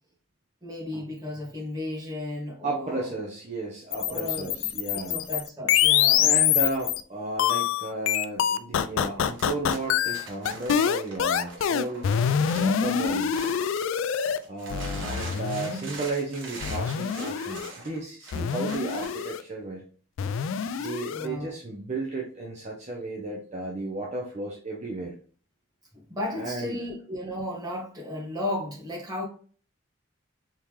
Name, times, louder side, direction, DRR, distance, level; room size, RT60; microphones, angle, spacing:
voice 1, 0.6-3.1 4.0-6.3 15.2-15.9 21.1-21.5 25.9-29.2, left 1 dB, 20° right, -5 dB, 1.7 m, -35 dB
voice 2, 2.6-5.2 6.2-12.1 12.5-13.3 14.5-19.8 20.8-25.1 26.4-26.8, right 2 dB, 35° right, -2 dB, 0.7 m, -34 dB
sound 1, 3.9-7.0 7.4-14.4 14.7-15.8 16.6-17.7 18.3-19.4 20.2-21.3, left 9 dB, 65° left, 0.3 m, -25 dB
sound 2, 9.3-13.8 14.2-19.3, right 3 dB, 60° right, 1.3 m, -42 dB
4.3 x 3.6 x 3.1 m, 0.42 s
head